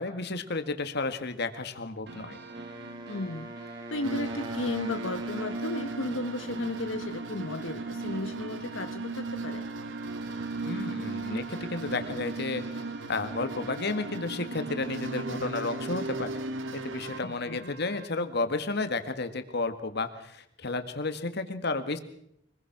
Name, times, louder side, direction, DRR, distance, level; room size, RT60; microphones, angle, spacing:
voice 1, 0.0-2.4 10.6-12.6 13.1-16.3 16.7-22.0, left 3 dB, 60° left, 8 dB, 1.8 m, -32 dB
sound 1, 2.1-18.1, right 3 dB, 60° right, 2.1 m, -47 dB
Wind instrument woodwind instrument, 2.5-6.7, right 1 dB, 20° right, 1.4 m, -43 dB
voice 2, 3.1-3.5 3.9-9.7 17.2-17.7, left 2 dB, 90° left, 8 dB, 1.1 m, -34 dB
sound 2, 4.0-17.2, right 3 dB, 80° right, 1.1 m, -36 dB
25.0 x 20.5 x 6.0 m, 0.74 s
head